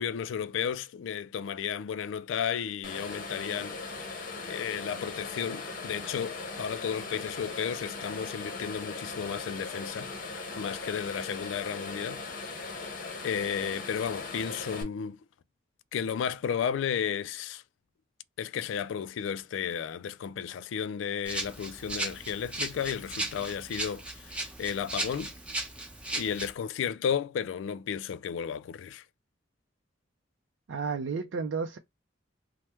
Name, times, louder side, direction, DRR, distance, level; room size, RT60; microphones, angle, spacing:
voice 1, 0.0-4.1 4.4-10.1 10.6-12.6 13.2-15.2 15.9-17.6 18.4-25.3 26.1-29.0, left 7 dB, 90° left, 0.3 m, -33 dB
sound 1, 2.8-14.8, left 3 dB, 50° left, 0.7 m, -39 dB
Rattle (instrument), 21.2-26.5, right 2 dB, 5° right, 0.7 m, -36 dB
voice 2, 30.7-31.8, right 5 dB, 85° right, 0.4 m, -32 dB
3.3 x 2.1 x 2.9 m
head